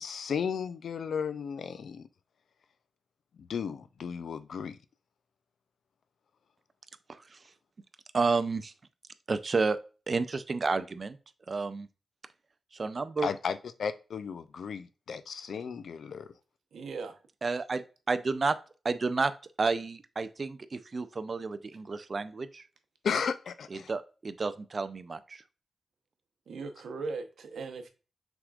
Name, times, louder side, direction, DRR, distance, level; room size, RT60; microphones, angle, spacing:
voice 1, 0.0-2.1 3.4-4.8 13.2-16.3 23.0-23.9, left 6 dB, 75° left, 0.4 m, -34 dB
voice 2, 7.1-7.4 8.1-8.7 9.3-9.8 10.1-11.2 11.5-11.9 12.7-13.3 17.4-18.6 18.8-19.3 19.6-22.6 23.7-25.4, right 4 dB, 35° right, 0.4 m, -31 dB
voice 3, 16.7-17.2 26.5-27.9, right 4 dB, 90° right, 0.8 m, -38 dB
5.9 x 3.6 x 2.4 m
wide cardioid pair, 140°, 0 cm